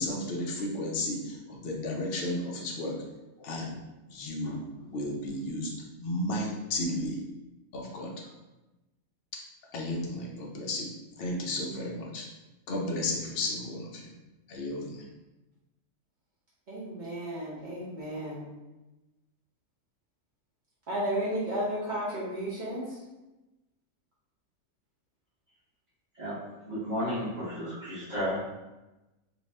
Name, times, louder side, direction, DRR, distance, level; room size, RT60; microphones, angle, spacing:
voice 1, 0.0-3.0 3.4-3.7 4.1-4.6 4.9-5.7 6.0-7.2 7.7-8.1 9.7-10.9 11.2-12.3 12.7-14.0 14.5-15.0, left 1 dB, 70° left, -1 dB, 0.5 m, -33 dB
voice 2, 16.7-18.4 20.9-22.8, right 1 dB, 65° right, -7 dB, 0.4 m, -33 dB
voice 3, 26.6-28.4, equal, 35° right, -13 dB, 0.8 m, -32 dB
2.6 x 2.3 x 3.1 m, 1.0 s
omnidirectional pair, 1.6 m